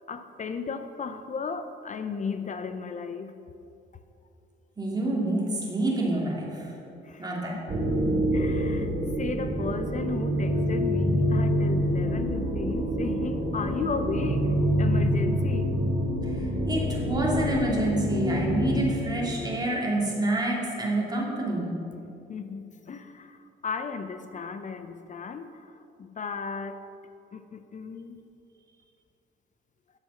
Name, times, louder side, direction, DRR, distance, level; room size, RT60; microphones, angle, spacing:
voice 1, 0.1-3.3 7.0-7.3 7.5-7.6 8.3-8.9 9.2-14.5 14.8-15.7 22.3-26.8 27.3-28.3, left 5 dB, 40° left, 9 dB, 0.6 m, -35 dB
voice 2, 4.8-6.8 7.2-7.5 16.2-21.7, right 2 dB, 20° right, -4 dB, 2.8 m, -28 dB
sound 1, 7.7-19.6, equal, 45° right, 1.8 m, -26 dB
10.0 x 7.0 x 5.7 m, 2.6 s
cardioid pair, 90°, 20 cm